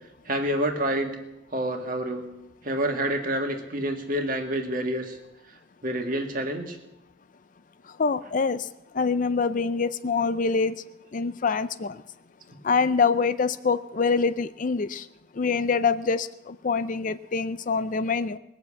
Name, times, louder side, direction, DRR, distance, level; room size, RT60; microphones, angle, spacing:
voice 1, 0.3-1.2 1.5-2.3 2.6-5.2 5.8-6.8 8.2-8.3, right 1 dB, 45° right, 3 dB, 1.9 m, -28 dB
voice 2, 8.0-8.7 8.9-10.8 11.1-12.0 12.6-15.1 15.4-18.4, left 5 dB, 40° left, 13 dB, 0.4 m, -25 dB
20.5 x 7.1 x 8.5 m, 0.93 s
head